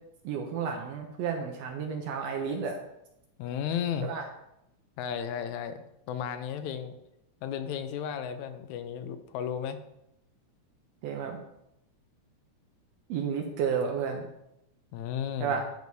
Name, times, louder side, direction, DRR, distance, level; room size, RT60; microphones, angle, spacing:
voice 1, 0.2-2.8 4.0-4.3 11.0-11.4 13.1-14.3 15.4-15.7, right 6 dB, 75° right, 3 dB, 1.6 m, -31 dB
voice 2, 3.4-4.1 5.0-6.9 7.4-9.8 14.9-15.6, left 8 dB, 80° left, 10 dB, 1.9 m, -34 dB
10.0 x 4.7 x 2.7 m, 0.83 s
omnidirectional pair, 3.4 m